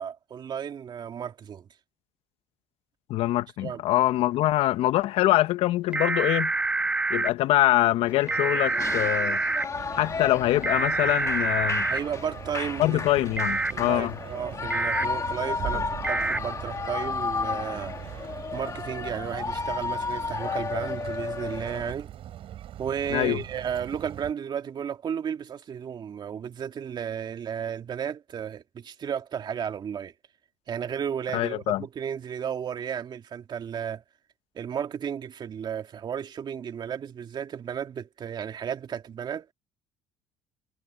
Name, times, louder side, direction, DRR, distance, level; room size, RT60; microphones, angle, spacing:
voice 1, 0.0-1.7 3.6-3.8 11.8-13.3 13.7-17.9 18.5-22.1 22.8-30.1 30.7-34.0 34.6-39.5, right 8 dB, 45° right, 2.1 m, -33 dB
voice 2, 3.1-6.5 7.1-9.4 9.9-11.8 12.8-14.2 15.7-15.8 23.1-23.4 31.3-31.8, left 15 dB, 70° left, 0.9 m, -24 dB
sound 1, 5.9-7.3 8.3-9.6 10.6-12.0 13.4-13.7 14.7-15.0 16.0-16.4, right 3 dB, 10° right, 0.5 m, -26 dB
Shout / Cheering, 8.1-21.9, left 5 dB, 30° left, 1.9 m, -33 dB
sound 2, 9.7-24.3, right 11 dB, 60° right, 7.4 m, -41 dB
supercardioid pair, 90°, 11 cm